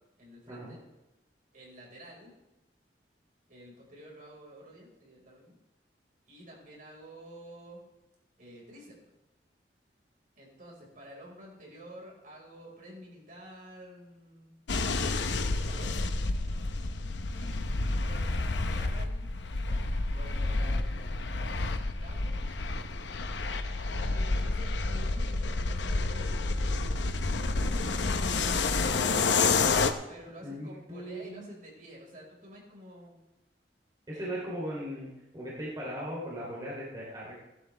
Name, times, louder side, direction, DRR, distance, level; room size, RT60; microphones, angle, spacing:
voice 1, 0.2-0.8 1.5-2.3 3.5-5.6 6.3-7.8 8.4-9.0 10.3-14.5 14.9-16.0 17.3-19.3 19.6-22.4 24.0-27.0 27.5-28.8 30.1-33.1 34.1-34.4, equal, 50° right, -2 dB, 4.9 m, -50 dB
sound 1, 14.7-29.9, left 3 dB, 90° left, 0.9 m, -29 dB
voice 2, 30.4-31.5 34.1-35.1 35.3-37.3, equal, 25° right, -5 dB, 3.0 m, -38 dB
17.5 x 11.5 x 3.4 m, 0.99 s
head